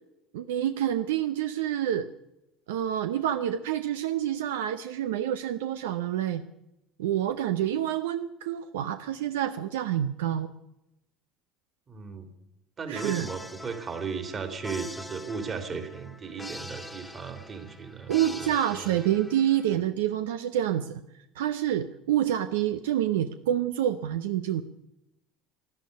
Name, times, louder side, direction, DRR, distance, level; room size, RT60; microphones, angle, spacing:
voice 1, 0.3-2.1 2.7-6.4 7.0-10.5 12.9-13.3 18.1-21.0 21.4-24.6, right 11 dB, 80° right, 10 dB, 0.6 m, -27 dB
voice 2, 11.9-12.3 12.8-18.9, right 5 dB, 35° right, 8 dB, 2.8 m, -36 dB
sound 1, 13.0-19.8, left 1 dB, 10° left, 1.1 m, -44 dB
12.0 x 12.0 x 9.4 m, 0.87 s
hypercardioid pair, 75°, 0 cm